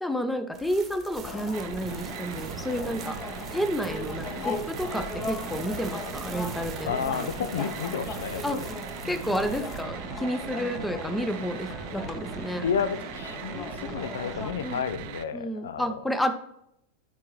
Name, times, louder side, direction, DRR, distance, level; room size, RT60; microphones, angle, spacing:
voice 1, 0.0-3.2 3.5-7.3 8.4-8.6 9.0-12.6 14.6-14.8 15.3-16.3, equal, 5° left, 9 dB, 0.7 m, -30 dB
sound 1, 0.5-9.8, right 6 dB, 25° right, 1.1 m, -45 dB
sound 2, 1.2-14.5, left 3 dB, 30° left, 1.0 m, -38 dB
sound 3, 1.5-15.2, right 10 dB, 45° right, 0.6 m, -39 dB
voice 2, 6.9-8.7 9.0-9.2 12.6-15.9, left 7 dB, 65° left, 12 dB, 0.6 m, -31 dB
11.0 x 4.7 x 3.1 m, 0.78 s
figure-of-eight pair, 90°, 0 cm